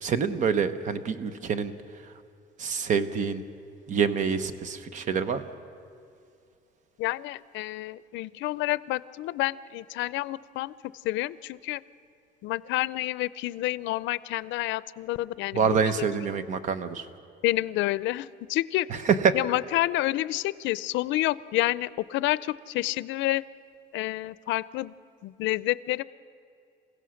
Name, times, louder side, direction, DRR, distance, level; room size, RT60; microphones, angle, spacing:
voice 1, 0.0-1.7 2.6-3.4 3.9-5.4 15.5-17.1 18.9-19.3, right 6 dB, 40° right, 12 dB, 0.9 m, -26 dB
voice 2, 7.0-10.7 11.0-11.8 12.4-15.8 17.4-18.9 19.3-23.4 23.9-24.9 25.2-26.0, left 17 dB, 90° left, 18 dB, 0.5 m, -29 dB
28.5 x 16.0 x 6.4 m, 2.5 s
cardioid pair, 170°, 19 cm